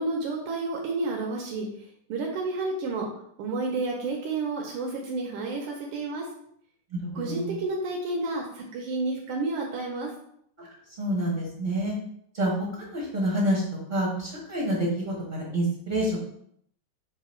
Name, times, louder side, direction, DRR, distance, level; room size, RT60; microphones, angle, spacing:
voice 1, 0.0-1.7 2.1-3.1 3.4-6.3 7.2-10.1, right 3 dB, 85° right, -1 dB, 1.6 m, -30 dB
voice 2, 7.3-7.6 10.6-10.7 11.0-11.9 12.3-12.5 12.9-13.6 13.9-16.2, right 1 dB, 50° right, -5 dB, 0.5 m, -27 dB
3.9 x 2.5 x 4.1 m, 0.69 s
omnidirectional pair, 2.4 m